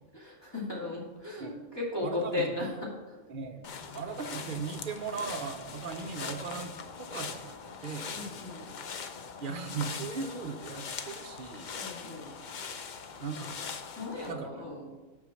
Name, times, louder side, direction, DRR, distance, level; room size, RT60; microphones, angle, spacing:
voice 1, 0.1-3.2 8.1-8.7 11.7-12.3 14.0-14.9, left 2 dB, 20° left, -5 dB, 2.4 m, -36 dB
voice 2, 2.0-2.4 3.3-8.2 9.4-11.7 13.2-13.6 14.3-14.7, right 5 dB, 50° right, 5 dB, 0.8 m, -38 dB
sound 1, 3.6-14.3, left 6 dB, 50° left, 0.6 m, -41 dB
6.2 x 5.4 x 6.4 m, 1.2 s
omnidirectional pair, 1.3 m